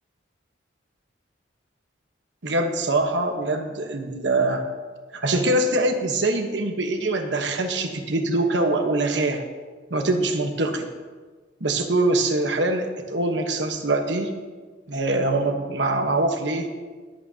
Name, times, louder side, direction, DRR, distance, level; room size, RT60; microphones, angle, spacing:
voice 1, 2.4-4.6 5.1-9.4 9.9-10.9 11.6-14.3 14.9-16.7, right 2 dB, 70° right, 4 dB, 1.2 m, -23 dB
20.5 x 8.6 x 2.9 m, 1.4 s
head